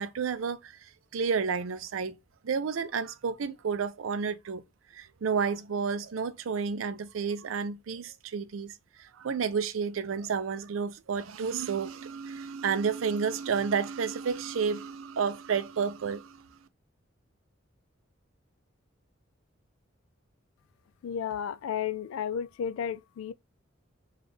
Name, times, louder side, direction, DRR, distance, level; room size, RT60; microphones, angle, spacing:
voice 1, 0.0-2.2 2.4-4.6 4.9-16.6, right 6 dB, 80° right, 0.4 m, -31 dB
voice 2, 21.0-23.3, left 8 dB, 90° left, 0.3 m, -33 dB
3.3 x 2.4 x 3.9 m
head